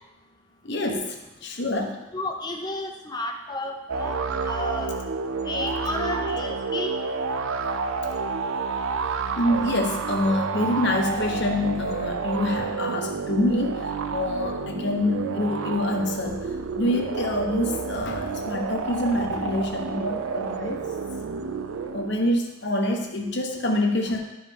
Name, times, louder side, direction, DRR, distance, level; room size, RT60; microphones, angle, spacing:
voice 1, 0.6-1.2 1.4-2.0 9.4-16.5 16.8-20.8 21.9-24.2, left 1 dB, 55° left, 2 dB, 1.1 m, -26 dB
voice 2, 2.1-4.2 4.5-5.0 5.4-6.9, left 1 dB, 20° left, 3 dB, 0.7 m, -32 dB
sound 1, 3.9-22.3, right 4 dB, 80° right, 0.5 m, -29 dB
12.0 x 4.8 x 3.6 m, 0.96 s
head